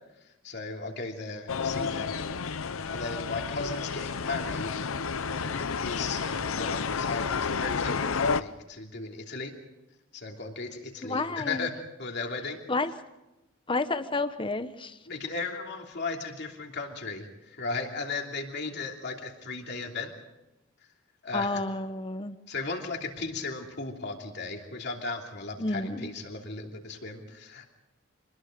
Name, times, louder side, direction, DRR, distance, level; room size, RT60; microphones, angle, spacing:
voice 1, 0.2-2.2 2.9-4.8 5.3-9.5 10.1-12.6 15.1-20.1 21.2-21.6 22.5-27.7, left 3 dB, 55° left, 2 dB, 3.0 m, -36 dB
sound 1, 1.5-8.4, left 5 dB, 75° left, 0.7 m, -31 dB
voice 2, 11.0-11.7 12.7-12.9 13.7-15.0 21.3-22.4 25.6-26.1, left 2 dB, 25° left, 11 dB, 1.0 m, -30 dB
26.0 x 20.5 x 5.2 m, 0.98 s
head